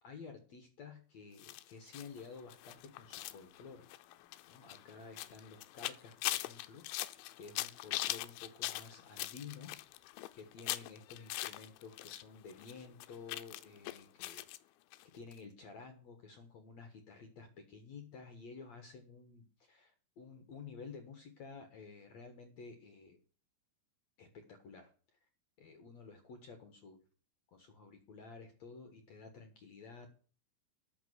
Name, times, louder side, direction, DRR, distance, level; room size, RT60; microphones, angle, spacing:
voice 1, 0.0-3.9 4.4-7.1 7.3-9.8 10.3-14.4 15.1-23.2 24.2-24.9 25.6-27.0 27.5-30.1, left 5 dB, 65° left, 7 dB, 1.7 m, -52 dB
sound 1, 1.4-12.2 12.5-14.6 14.9-15.0 15.3-15.4, left 16 dB, 85° left, 3.1 m, -42 dB
11.5 x 6.6 x 7.9 m, 0.41 s
omnidirectional pair, 5.3 m